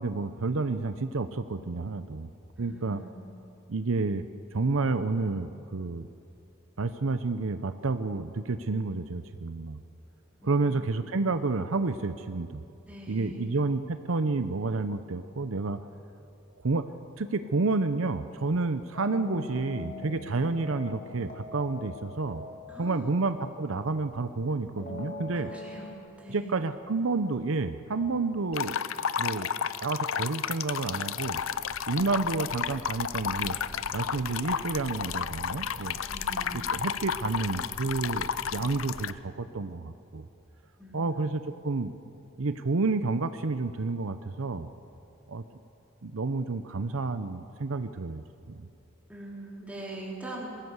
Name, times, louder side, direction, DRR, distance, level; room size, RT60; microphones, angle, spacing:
voice 1, 0.0-2.3 2.6-3.0 3.7-4.2 4.5-6.1 6.8-9.8 10.4-12.6 13.1-15.8 16.6-16.8 17.2-22.4 22.8-25.5 26.3-28.8 29.2-29.5 29.8-31.4 31.9-33.6 33.9-36.0 36.5-40.3 40.9-41.9 42.4-44.7 45.3-45.4 46.0-48.7, right 3 dB, 70° right, 11 dB, 0.7 m, -30 dB
voice 2, 2.6-3.2 10.4-10.9 12.9-13.5 22.7-23.2 25.3-25.9 26.2-26.5 36.0-36.6 40.8-41.3 49.1-50.5, right 2 dB, 5° right, -4 dB, 3.9 m, -43 dB
sound 1, 18.9-24.1 24.8-26.0, left 2 dB, 40° left, 2.7 m, -42 dB
sound 2, 28.5-39.1, left 7 dB, 70° left, 0.6 m, -32 dB
sound 3, 30.8-39.0, right 1 dB, 25° right, 0.7 m, -47 dB
22.0 x 16.0 x 8.1 m, 2.6 s
head